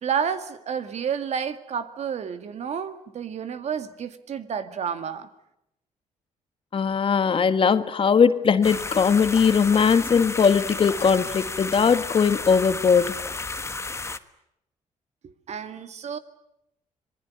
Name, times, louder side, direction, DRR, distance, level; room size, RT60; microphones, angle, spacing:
voice 1, 0.0-5.3 15.2-16.2, right 7 dB, 60° right, 2.1 m, -30 dB
voice 2, 6.7-13.2, left 6 dB, 45° left, 1.5 m, -20 dB
sound 1, 8.6-14.2, left 3 dB, 20° left, 1.3 m, -33 dB
26.5 x 20.0 x 9.7 m
cardioid pair, 95°, 13 cm